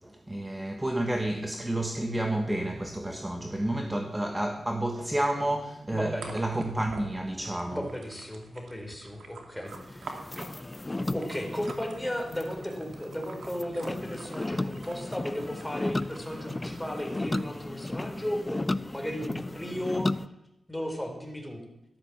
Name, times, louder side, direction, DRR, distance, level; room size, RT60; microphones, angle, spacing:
voice 1, 0.0-7.9, right 1 dB, 15° right, 1.4 m, -30 dB
voice 2, 5.9-6.3 7.7-10.2 11.1-20.3 20.7-21.6, equal, 5° left, 3.9 m, -35 dB
sound 1, 6.2-17.5, right 3 dB, 80° right, 2.6 m, -48 dB
sound 2, 9.7-20.3, left 2 dB, 25° left, 0.6 m, -35 dB
13.0 x 13.0 x 7.3 m
cardioid pair, 75°, 0 cm